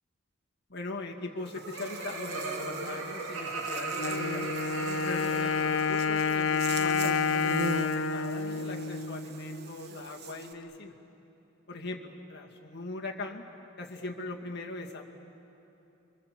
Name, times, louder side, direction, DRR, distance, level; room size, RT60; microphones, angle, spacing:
voice 1, 0.7-4.5 5.0-10.9 11.7-13.4 13.8-15.0, left 2 dB, 55° left, 1 dB, 2.2 m, -40 dB
Laughter, 1.2-6.5, right 3 dB, 80° right, 3.3 m, -38 dB
Buzz, 1.5-10.5, right 2 dB, 50° right, 1.5 m, -40 dB
Wind instrument woodwind instrument, 4.0-9.7, left 5 dB, 70° left, 0.7 m, -29 dB
30.0 x 24.5 x 7.7 m, 3.0 s
head